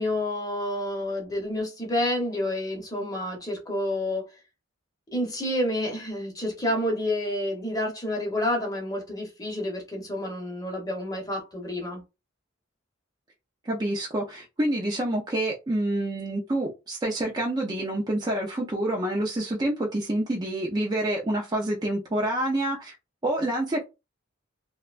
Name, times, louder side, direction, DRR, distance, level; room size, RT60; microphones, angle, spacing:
voice 1, 0.0-4.3 5.1-12.0, left 1 dB, 20° left, 0.8 m, -29 dB
voice 2, 13.6-22.9 23.2-23.8, right 1 dB, 20° right, 0.5 m, -27 dB
2.6 x 2.2 x 2.4 m
head